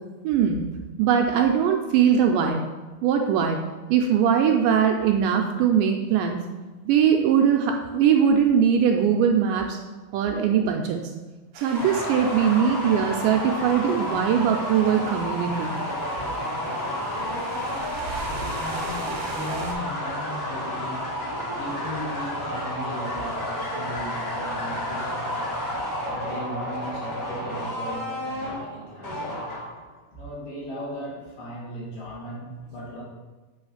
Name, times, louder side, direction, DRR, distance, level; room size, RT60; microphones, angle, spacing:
voice 1, 0.2-0.6 1.0-2.6 3.0-3.6 3.9-6.4 6.8-9.8 10.1-11.0 11.6-15.7, right 8 dB, 80° right, 2 dB, 2.0 m, -21 dB
sound 1, 11.5-19.7, right 3 dB, 65° right, 1.5 m, -40 dB
sound 2, 11.7-29.9, equal, 40° left, 1.4 m, -31 dB
voice 2, 18.4-29.9 30.1-33.0, equal, 70° left, -6 dB, 3.4 m, -37 dB
7.8 x 3.2 x 5.5 m, 1.2 s
omnidirectional pair, 4.0 m